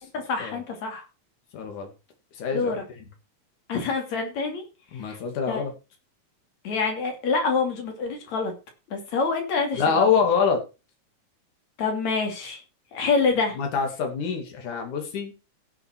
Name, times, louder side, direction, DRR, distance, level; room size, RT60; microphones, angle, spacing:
voice 1, 0.1-1.0 2.5-2.8 3.7-4.6 5.0-5.2 5.5-5.6 6.6-8.5 8.9-10.1 11.8-12.6 12.9-13.6, left 4 dB, 65° left, 4 dB, 4.2 m, -26 dB
voice 2, 1.5-1.9 2.4-2.8 4.9-5.7 9.8-10.6 13.6-15.3, left 6 dB, 85° left, 4 dB, 3.8 m, -25 dB
16.5 x 6.3 x 4.5 m, 0.29 s
omnidirectional pair, 3.4 m